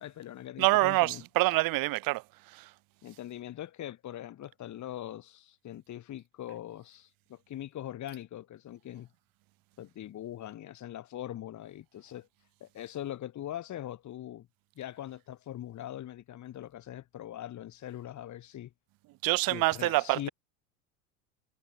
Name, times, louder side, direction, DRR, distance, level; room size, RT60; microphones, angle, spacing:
voice 1, 0.0-1.2 3.0-9.1 9.8-12.3 12.6-14.5 14.8-18.7 19.5-20.3, left 12 dB, 45° left, 2.5 m, -42 dB
voice 2, 0.6-2.7 19.2-20.3, right 20 dB, 55° right, 1.5 m, -26 dB
hypercardioid pair, 80°, 41 cm